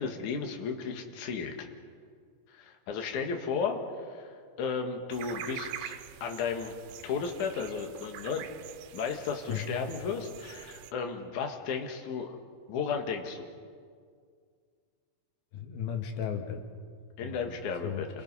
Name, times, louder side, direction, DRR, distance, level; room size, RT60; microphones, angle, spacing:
voice 1, 0.0-1.7 2.5-4.3 4.6-6.7 7.0-8.5 8.9-12.4 12.7-13.5 17.2-18.1, left 5 dB, 60° left, 3 dB, 2.9 m, -34 dB
sound 1, 5.1-10.9, right 10 dB, 85° right, 2.8 m, -45 dB
voice 2, 15.5-16.6 17.2-17.6 17.8-18.1, left 8 dB, 90° left, 4 dB, 3.5 m, -35 dB
29.0 x 23.5 x 5.5 m, 2.1 s
omnidirectional pair, 4.2 m